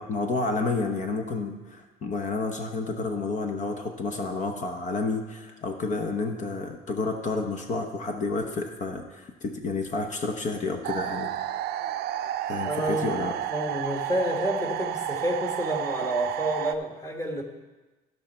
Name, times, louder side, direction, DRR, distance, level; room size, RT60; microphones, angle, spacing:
voice 1, 0.0-11.3 12.5-13.4, left 3 dB, 45° left, 5 dB, 1.0 m, -30 dB
sound 1, 10.8-16.7, right 11 dB, 70° right, 0.5 m, -31 dB
voice 2, 12.6-13.1 13.5-17.4, right 1 dB, 15° left, 2 dB, 1.7 m, -29 dB
15.5 x 5.5 x 4.4 m, 1.2 s
cardioid pair, 110°, 17 cm